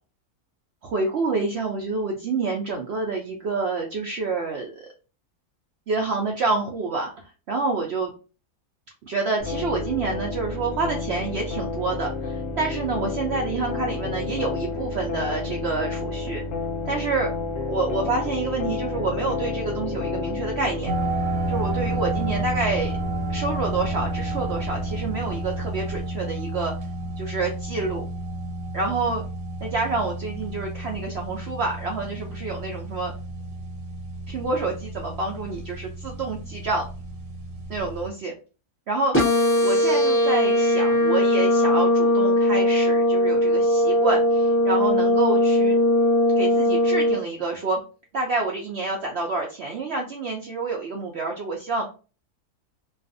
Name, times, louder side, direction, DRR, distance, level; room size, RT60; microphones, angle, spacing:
voice 1, 0.8-4.9 5.9-8.1 9.0-16.4 16.9-17.3 17.7-20.9 21.5-22.9 23.3-26.7 27.2-28.0 28.7-29.2 29.6-33.1 34.3-36.9 37.7-38.3 38.9-45.8 46.4-47.8 48.1-51.9, right 3 dB, 80° right, 1 dB, 0.6 m, -28 dB
sound 1, 9.4-26.1, left 3 dB, 60° left, 0.9 m, -31 dB
sound 2, 20.9-38.1, right 1 dB, 60° right, 0.9 m, -31 dB
sound 3, 39.1-47.1, left 1 dB, 20° left, 0.3 m, -19 dB
2.5 x 2.3 x 2.4 m, 0.34 s
omnidirectional pair, 1.7 m